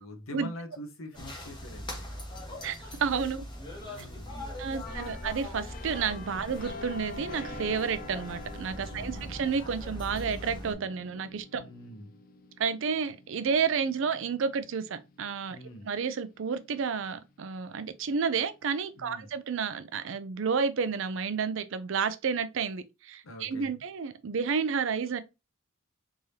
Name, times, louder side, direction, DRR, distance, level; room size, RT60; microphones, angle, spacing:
voice 1, 0.0-2.1 3.8-5.3 6.4-6.6 8.9-9.3 11.6-12.1 15.5-15.9 19.0-19.3 23.2-23.8, left 1 dB, 80° left, 0.9 m, -45 dB
sound 1, 1.1-10.7, left 1 dB, 20° left, 1.1 m, -41 dB
voice 2, 2.6-3.4 4.6-11.6 12.6-15.6 15.8-25.2, right 6 dB, 65° right, 0.5 m, -31 dB
sound 2, 4.9-16.4 16.8-17.1, left 3 dB, 45° left, 0.5 m, -47 dB
sound 3, 5.8-11.4, right 1 dB, 40° right, 0.9 m, -51 dB
3.6 x 3.2 x 2.7 m
head